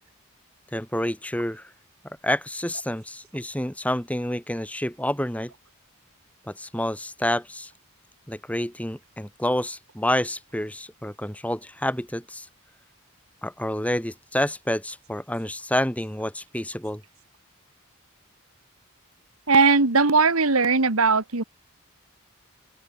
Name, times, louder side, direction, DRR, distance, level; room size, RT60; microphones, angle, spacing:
voice 1, 0.7-1.7 2.0-5.5 6.5-7.7 8.3-12.5 13.4-17.0, left 1 dB, 5° left, 2.6 m, -28 dB
voice 2, 19.5-21.4, right 4 dB, 80° right, 1.9 m, -19 dB
open air
head